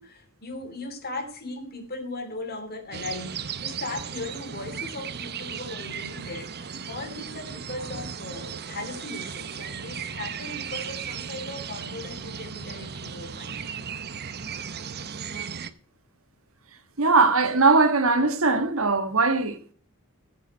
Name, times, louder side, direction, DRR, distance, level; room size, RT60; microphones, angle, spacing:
voice 1, 0.0-13.7, left 2 dB, 45° left, 2.8 m, -38 dB
sound 1, 2.9-15.7, right 7 dB, 50° right, 0.9 m, -36 dB
voice 2, 17.0-19.7, right 3 dB, 70° right, 1.7 m, -20 dB
15.5 x 8.3 x 4.2 m
head